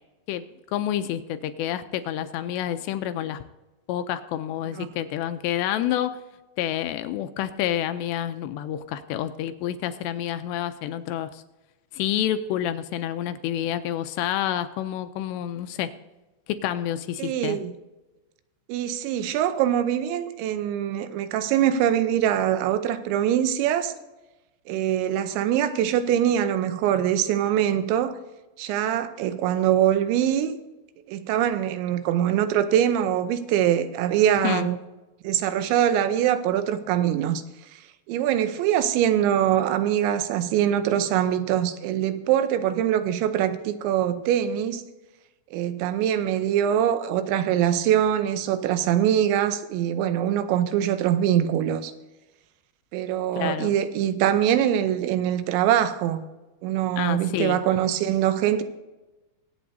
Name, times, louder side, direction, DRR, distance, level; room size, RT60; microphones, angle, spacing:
voice 1, 0.7-3.4 3.9-6.2 6.6-11.4 11.9-15.9 16.5-17.6 34.4-34.7 53.4-53.7 57.0-57.6, left 11 dB, 85° left, 2.7 m, -28 dB
voice 2, 17.2-17.7 18.7-23.9 24.7-28.2 28.6-30.6 31.1-34.8 35.2-37.4 38.1-44.8 45.5-51.9 52.9-56.2 56.6-58.6, right 10 dB, 85° right, 3.1 m, -23 dB
23.5 x 8.5 x 2.7 m
omnidirectional pair, 5.2 m